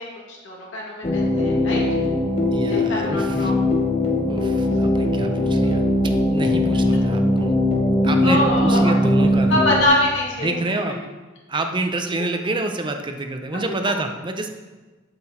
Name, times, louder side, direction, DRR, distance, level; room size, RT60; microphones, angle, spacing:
voice 1, 0.0-1.8 2.7-3.5 5.6-5.7 8.2-8.9 9.5-10.6 12.2-12.3, left 1 dB, 75° left, -3 dB, 2.1 m, -24 dB
sound 1, 1.0-9.9, left 1 dB, 30° left, 1.3 m, -20 dB
voice 2, 2.5-3.5 4.3-7.5 8.0-9.7 10.4-11.0 11.5-14.5, right 2 dB, 25° right, 5 dB, 0.6 m, -27 dB
7.8 x 6.0 x 4.4 m, 1.2 s
head